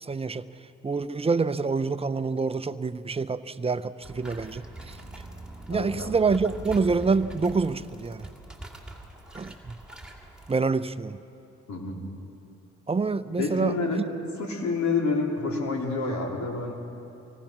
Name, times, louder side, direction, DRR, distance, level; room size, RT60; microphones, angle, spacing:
voice 1, 0.0-0.5 0.8-5.0 5.7-8.3 9.3-9.7 10.5-11.2 12.9-13.7, right 4 dB, 20° right, 12 dB, 0.6 m, -27 dB
sound 1, 4.0-10.5, right 1 dB, 5° right, 2.6 m, -43 dB
voice 2, 5.7-6.1 11.7-12.0 13.4-14.0 14.4-16.7, left 3 dB, 70° left, -1 dB, 4.0 m, -28 dB
25.5 x 18.0 x 6.0 m, 2.9 s
cardioid pair, 90°, 30 cm